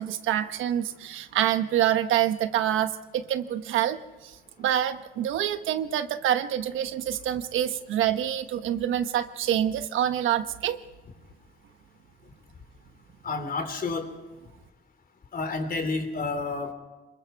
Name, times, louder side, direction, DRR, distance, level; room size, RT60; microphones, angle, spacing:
voice 1, 0.0-4.0 4.2-10.8, right 11 dB, 85° right, 9 dB, 1.2 m, -26 dB
voice 2, 13.2-14.1 15.3-16.7, left 3 dB, 45° left, 6 dB, 3.8 m, -30 dB
26.5 x 22.5 x 4.7 m, 1.1 s
cardioid pair, 90°, 20 cm